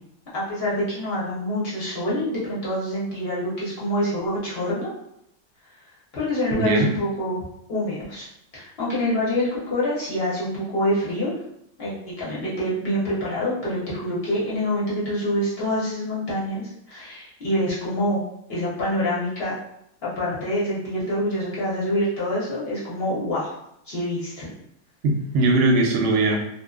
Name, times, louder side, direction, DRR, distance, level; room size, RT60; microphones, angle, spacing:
voice 1, 0.3-4.9 6.1-7.4 7.7-8.3 8.5-11.3 11.8-18.2 18.5-19.6 20.0-23.5 23.9-24.5, left 1 dB, 50° left, -7 dB, 0.9 m, -26 dB
voice 2, 6.5-6.9 25.0-26.4, right 2 dB, 65° right, 2 dB, 0.7 m, -20 dB
2.6 x 2.4 x 2.3 m, 0.76 s
omnidirectional pair, 1.6 m